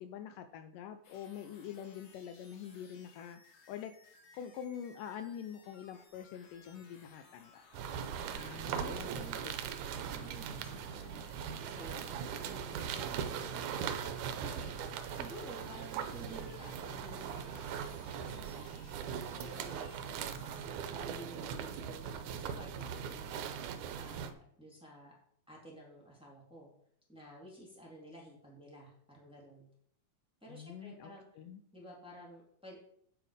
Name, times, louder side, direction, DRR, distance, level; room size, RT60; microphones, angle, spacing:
voice 1, 0.0-3.4 3.7-3.9 4.3-7.6 8.3-9.5 9.8-9.9 30.5-31.1 31.4-31.6, left 9 dB, 80° left, 8 dB, 2.1 m, -45 dB
sound 1, 1.0-20.6, left 4 dB, 55° left, 2.3 m, -61 dB
sound 2, 7.7-24.3, right 8 dB, 75° right, 2.0 m, -40 dB
voice 2, 8.6-9.4 10.1-11.2 11.6-13.9 14.4-14.7 15.1-17.9 18.2-18.7 19.3-23.6 23.9-25.1 25.5-26.7 27.1-29.7 30.4-31.2 31.7-32.8, equal, ahead, -4 dB, 2.8 m, -52 dB
9.0 x 7.6 x 5.1 m, 0.65 s
omnidirectional pair, 4.0 m